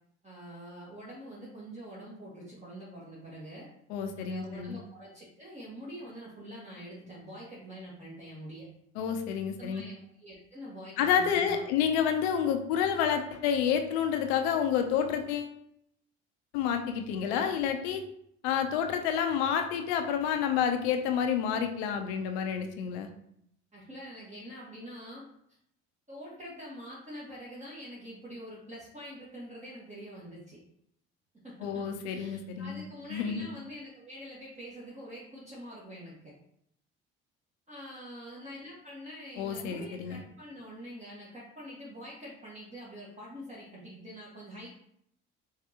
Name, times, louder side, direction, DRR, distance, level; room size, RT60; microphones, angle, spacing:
voice 1, 0.2-3.7 4.2-8.7 9.6-11.6 23.7-25.3 26.1-30.6 31.4-36.3 37.7-44.7, equal, 20° right, -6 dB, 1.5 m, -45 dB
voice 2, 3.9-4.8 9.0-9.8 11.0-15.5 16.5-18.0 18.4-23.1 31.6-32.8 33.1-33.5 39.4-40.2, left 8 dB, 80° left, 5 dB, 0.6 m, -29 dB
4.8 x 3.2 x 2.9 m, 0.73 s
hypercardioid pair, 65°, 32 cm